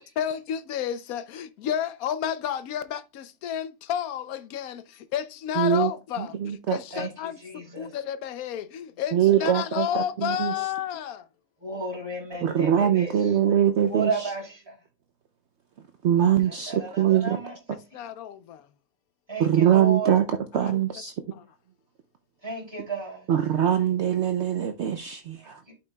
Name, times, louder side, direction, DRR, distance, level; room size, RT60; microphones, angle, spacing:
voice 1, 0.0-7.4 7.8-11.3 17.7-18.7 20.6-20.7 21.3-21.4, left 10 dB, 90° left, 1.1 m, -31 dB
voice 2, 5.6-5.9 6.2-6.8 9.1-10.5 12.4-14.1 16.0-17.4 19.4-20.2 20.5-21.1 23.3-25.6, right 10 dB, 60° right, 0.8 m, -22 dB
voice 3, 6.9-8.0 9.3-9.5 11.6-13.5 13.9-14.8 16.2-17.6 19.3-20.2 22.4-23.3 25.4-25.7, right 3 dB, 15° right, 3.0 m, -34 dB
11.0 x 5.4 x 2.2 m
omnidirectional pair, 1.5 m